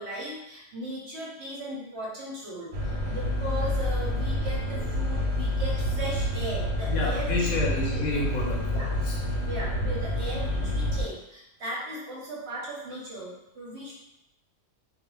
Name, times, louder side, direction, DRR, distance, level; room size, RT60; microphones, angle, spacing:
voice 1, 0.0-7.5 7.8-8.0 8.7-8.9 9.4-13.9, right 1 dB, 55° right, -5 dB, 0.8 m, -37 dB
sound 1, 2.7-11.0, left 1 dB, 85° right, 1.1 m, -28 dB
voice 2, 6.9-9.2, left 2 dB, 70° left, -2 dB, 0.9 m, -30 dB
2.4 x 2.3 x 3.0 m, 0.86 s
omnidirectional pair, 1.7 m